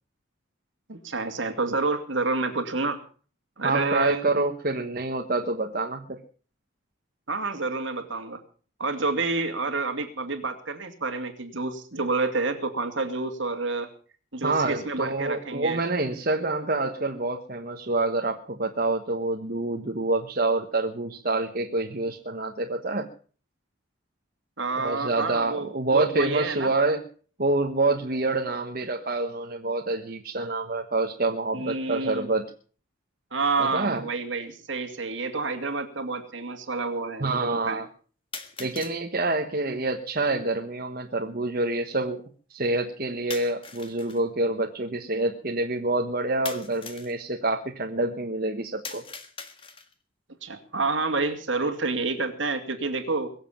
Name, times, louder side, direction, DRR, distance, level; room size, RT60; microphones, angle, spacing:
voice 1, 0.9-3.0 3.6-4.2 7.3-8.4 8.8-13.9 14.3-15.8 24.6-26.7 31.5-32.3 33.3-37.8 50.4-53.3, right 3 dB, 65° right, 5 dB, 2.5 m, -29 dB
voice 2, 3.6-6.2 14.4-23.1 24.8-27.0 27.4-32.5 33.6-34.0 37.2-37.9 38.6-42.2 42.5-49.0, right 2 dB, 45° right, 3 dB, 1.3 m, -27 dB
sound 1, 34.0-34.1 35.0-35.1 38.3-39.0 43.3-44.2 46.5-47.2 48.8-50.0, left 5 dB, 25° left, 1.6 m, -40 dB
22.5 x 7.5 x 7.2 m, 0.43 s
head